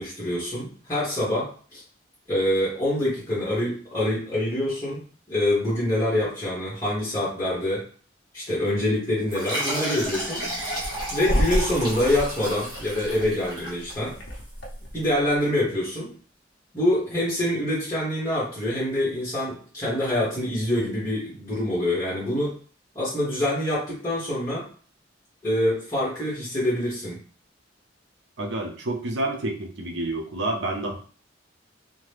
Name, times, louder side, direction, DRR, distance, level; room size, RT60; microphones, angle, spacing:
voice 1, 0.0-1.8 2.3-5.0 5.3-7.8 8.3-10.5 11.1-14.1 14.9-16.1 16.7-22.5 22.9-24.7 25.4-27.2, left 1 dB, 15° left, -8 dB, 1.1 m, -25 dB
sound 1, 9.3-14.4, right 1 dB, 25° right, 1.1 m, -32 dB
sound 2, 10.0-15.4, equal, 70° left, 0.7 m, -31 dB
voice 2, 28.4-30.9, right 2 dB, 65° right, 2 dB, 0.6 m, -29 dB
2.8 x 2.1 x 3.3 m, 0.42 s
head